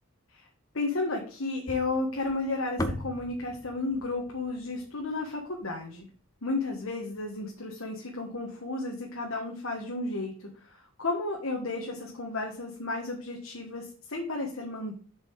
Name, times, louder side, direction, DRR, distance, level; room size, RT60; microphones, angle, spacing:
voice 1, 0.7-6.1 6.4-14.9, left 2 dB, 75° left, 0 dB, 1.4 m, -33 dB
sound 1, 1.7-6.0, left 1 dB, 15° left, 0.7 m, -39 dB
7.1 x 5.3 x 4.7 m, 0.41 s
head